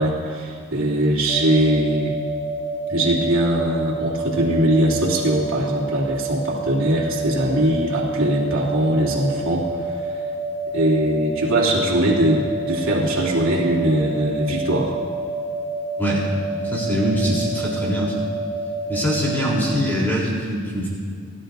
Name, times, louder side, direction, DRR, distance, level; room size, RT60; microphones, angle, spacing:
voice 1, 0.0-2.2 2.9-10.1 10.7-15.0, right 1 dB, 70° right, -5 dB, 2.9 m, -21 dB
sound 1, 1.3-19.9, right 2 dB, 10° right, 2.5 m, -28 dB
voice 2, 16.5-18.3 18.9-20.9, equal, 10° left, -5 dB, 3.7 m, -23 dB
22.5 x 12.5 x 2.7 m, 2.2 s
head